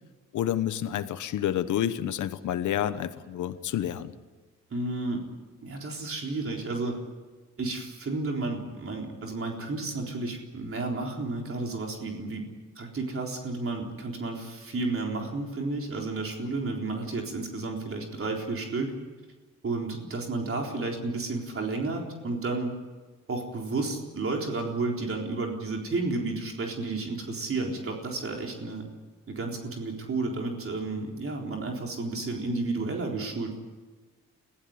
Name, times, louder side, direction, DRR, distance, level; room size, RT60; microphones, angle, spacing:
voice 1, 0.3-4.2, left 11 dB, 85° left, 12 dB, 1.1 m, -29 dB
voice 2, 4.7-5.2 5.6-7.0 7.6-12.4 12.8-18.9 19.6-22.8 23.3-28.9 29.3-33.6, right 3 dB, 45° right, 1 dB, 3.9 m, -32 dB
22.0 x 15.5 x 9.6 m, 1.3 s
cardioid pair, 85°, 29 cm